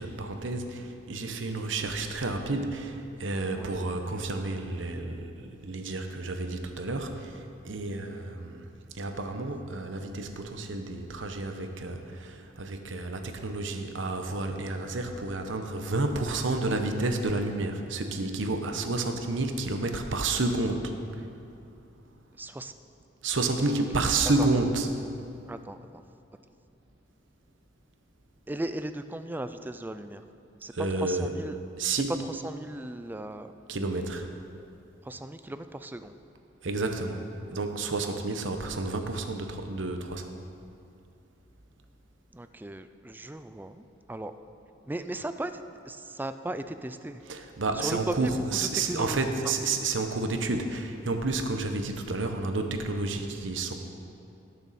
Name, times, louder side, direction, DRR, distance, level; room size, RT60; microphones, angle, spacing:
voice 1, 0.0-5.3 5.6-8.7 8.9-21.3 23.2-24.9 30.7-31.3 31.8-32.1 33.7-34.3 36.6-37.2 37.5-40.3 47.3-53.7, right 2 dB, 85° right, 5 dB, 1.0 m, -30 dB
voice 2, 3.5-3.9 22.4-22.7 24.4-24.5 25.5-25.8 28.5-30.2 30.6-31.6 31.9-32.0 32.3-33.5 35.0-36.2 42.3-43.8 44.1-44.3 44.9-47.2 47.8-48.3 48.9-49.2, right 1 dB, 10° right, 10 dB, 0.3 m, -36 dB
18.0 x 6.9 x 4.2 m, 2.6 s
head